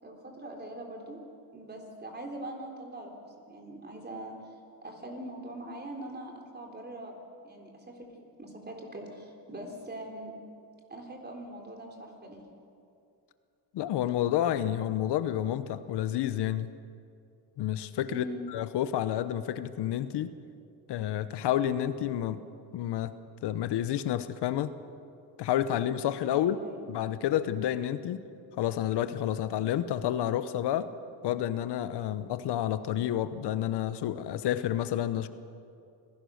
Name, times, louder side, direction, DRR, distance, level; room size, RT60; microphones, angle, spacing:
voice 1, 0.0-1.2 1.5-4.4 4.8-7.1 7.4-10.3 10.9-12.5 18.1-18.5 26.3-26.9, right 1 dB, 25° right, 1 dB, 3.9 m, -42 dB
voice 2, 13.7-16.7 17.6-20.3 20.9-22.4 22.7-23.1 23.4-24.7 25.4-26.6 26.9-28.2 28.6-30.9 31.2-35.3, left 11 dB, 75° left, 13 dB, 1.0 m, -29 dB
25.0 x 17.0 x 6.5 m, 2.5 s
cardioid pair, 115°, 41 cm